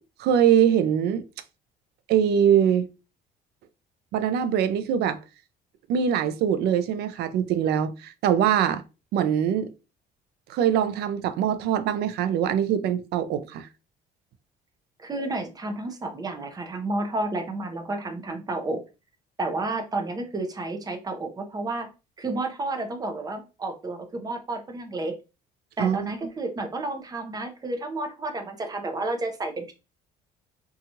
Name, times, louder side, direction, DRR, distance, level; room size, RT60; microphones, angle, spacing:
voice 1, 0.2-1.2 2.1-2.9 4.1-5.2 5.9-8.8 9.1-9.7 10.5-13.7 25.8-26.1, right 9 dB, 75° right, 0.4 m, -23 dB
voice 2, 15.0-18.8 19.4-21.9 22.2-25.1 25.8-29.7, right 2 dB, 20° right, 0.6 m, -31 dB
2.8 x 2.3 x 2.7 m
cardioid pair, 110°, 17 cm